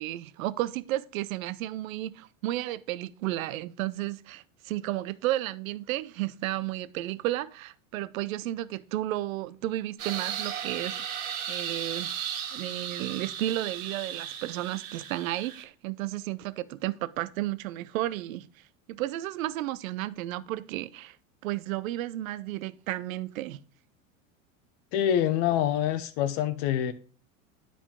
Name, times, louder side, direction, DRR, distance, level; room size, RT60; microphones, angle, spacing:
voice 1, 0.0-11.1 11.5-12.2 12.5-18.5 18.9-21.2 21.4-23.6, right 15 dB, 75° right, 0.6 m, -33 dB
sound 1, 10.0-15.6, right 9 dB, 55° right, 1.9 m, -36 dB
voice 2, 24.9-26.9, left 10 dB, 55° left, 0.8 m, -26 dB
9.8 x 5.1 x 3.6 m
hypercardioid pair, 95°, 41 cm